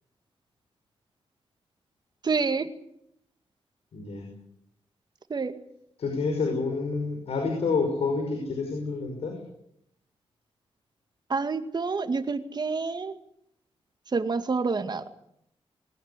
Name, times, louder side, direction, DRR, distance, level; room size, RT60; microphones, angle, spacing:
voice 1, 2.2-2.7 5.3-5.6 11.3-13.1 14.1-15.1, right 4 dB, 45° right, 9 dB, 2.1 m, -28 dB
voice 2, 3.9-4.3 6.0-9.4, left 4 dB, 80° left, 3 dB, 5.5 m, -28 dB
21.0 x 18.5 x 9.8 m, 0.75 s
cardioid pair, 90°, 10 cm